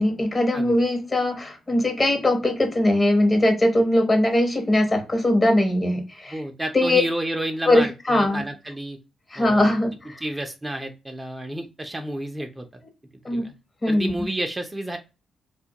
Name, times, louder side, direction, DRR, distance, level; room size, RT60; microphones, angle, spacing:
voice 1, 0.0-6.4 6.7-7.0 7.7-8.4 9.3-10.2 13.2-13.5 13.8-14.3, left 1 dB, 30° left, 0.8 m, -21 dB
voice 2, 6.3-9.0 9.3-9.7 10.2-12.7 13.3-13.5 13.9-15.0, right 1 dB, 20° right, 0.4 m, -30 dB
2.2 x 2.1 x 2.7 m
supercardioid pair, 55°, 0 cm